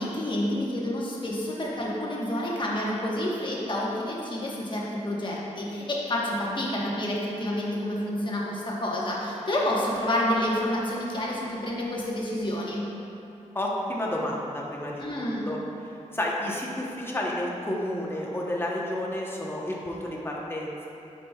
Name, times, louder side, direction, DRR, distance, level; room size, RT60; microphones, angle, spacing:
voice 1, 0.0-12.8 15.0-15.5, left 1 dB, 35° left, -5 dB, 1.2 m, -29 dB
voice 2, 13.5-15.6 16.1-20.9, left 1 dB, 15° left, -3 dB, 0.9 m, -31 dB
9.8 x 5.1 x 2.3 m, 2.8 s
wide cardioid pair, 115°, 13 cm